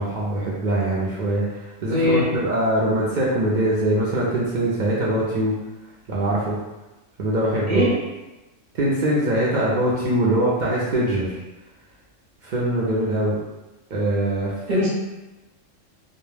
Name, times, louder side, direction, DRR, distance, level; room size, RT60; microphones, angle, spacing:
voice 1, 0.0-1.4 1.8-5.5 6.1-6.6 7.2-7.9 8.7-11.4 12.4-13.4 13.9-14.5, right 1 dB, 65° right, -6 dB, 0.4 m, -22 dB
voice 2, 1.9-2.3 7.7-7.9 14.7-14.9, left 1 dB, 45° right, -6 dB, 0.8 m, -20 dB
2.2 x 2.1 x 3.1 m, 1.0 s
omnidirectional pair, 1.3 m